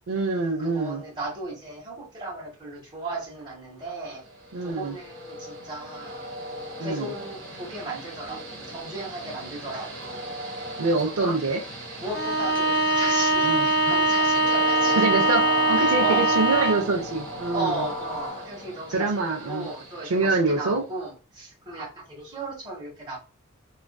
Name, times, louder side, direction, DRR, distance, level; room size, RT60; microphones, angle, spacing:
voice 1, 0.1-1.0 4.5-4.9 6.8-7.1 10.8-11.6 13.4-13.6 15.0-17.8 18.9-19.7 20.0-20.8, right 3 dB, 85° right, 0.5 m, -25 dB
voice 2, 0.6-4.2 4.6-6.3 6.8-10.3 11.1-11.4 12.0-15.0 15.8-16.2 17.5-23.2, right 2 dB, 20° right, 1.2 m, -35 dB
Train, 4.1-20.8, right 1 dB, 60° right, 1.0 m, -37 dB
Bowed string instrument, 12.1-17.0, right 2 dB, 50° left, 0.4 m, -22 dB
2.4 x 2.4 x 2.3 m
head